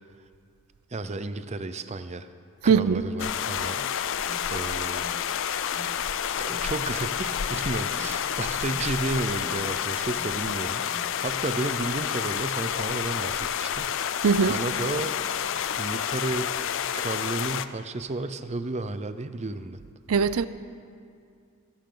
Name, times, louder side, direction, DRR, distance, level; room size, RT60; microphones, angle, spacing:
voice 1, 0.9-2.3 2.6-3.9 4.5-5.1 6.4-13.9 14.4-15.2 15.8-16.5 16.9-19.8, right 2 dB, 30° right, 0.6 m, -32 dB
voice 2, 2.7-3.0 14.2-14.6 20.1-20.5, right 6 dB, 75° right, 0.5 m, -20 dB
sound 1, 3.2-17.7, left 8 dB, 60° left, 0.5 m, -29 dB
Alarm, 4.2-11.2, left 1 dB, 15° left, 2.2 m, -48 dB
26.0 x 11.5 x 3.9 m
head